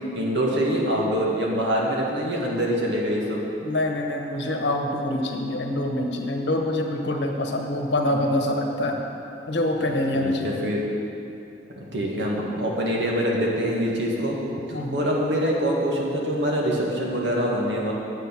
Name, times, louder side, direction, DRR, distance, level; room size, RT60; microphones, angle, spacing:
voice 1, 0.1-3.4 8.0-8.2 9.8-10.8 11.7-14.4 14.7-17.9, equal, 75° right, -3 dB, 1.9 m, -25 dB
voice 2, 3.6-9.0 9.5-10.6 14.7-15.0, left 1 dB, 75° left, 2 dB, 1.1 m, -25 dB
9.8 x 7.8 x 6.0 m, 2.8 s
head